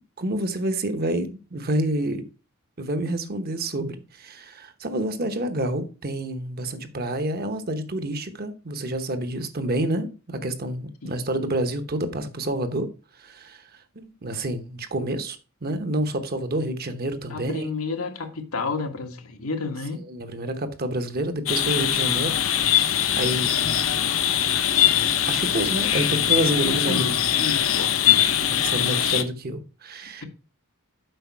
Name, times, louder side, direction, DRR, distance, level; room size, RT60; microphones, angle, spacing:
voice 1, 0.2-2.2 2.8-12.9 13.2-13.6 14.0-17.7 20.0-23.6 25.3-27.1 28.5-30.2, right 1 dB, 45° right, 1.0 m, -28 dB
voice 2, 17.3-20.0 23.2-23.4 26.6-28.3, left 3 dB, 90° left, 1.4 m, -31 dB
sound 1, 21.5-29.2, left 10 dB, 70° left, 0.8 m, -22 dB
7.9 x 5.2 x 4.6 m
head